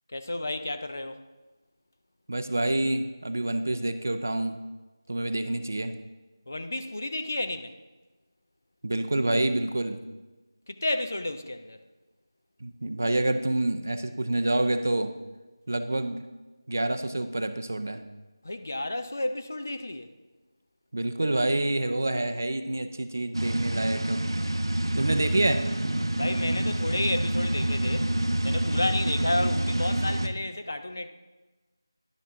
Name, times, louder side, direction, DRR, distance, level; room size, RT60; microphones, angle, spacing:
voice 1, 0.1-1.2 6.5-7.7 10.7-11.8 18.4-20.1 26.2-28.1 28.4-31.1, left 1 dB, 35° left, 0.4 m, -31 dB
voice 2, 2.3-4.6 5.1-6.0 8.8-10.0 12.6-15.1 15.7-16.2 16.7-18.0 20.9-24.2 24.9-25.6, right 1 dB, 35° right, 0.4 m, -27 dB
sound 1, 23.3-30.3, right 1 dB, 90° right, 0.6 m, -27 dB
10.5 x 6.1 x 3.7 m
figure-of-eight pair, 180°, 2 cm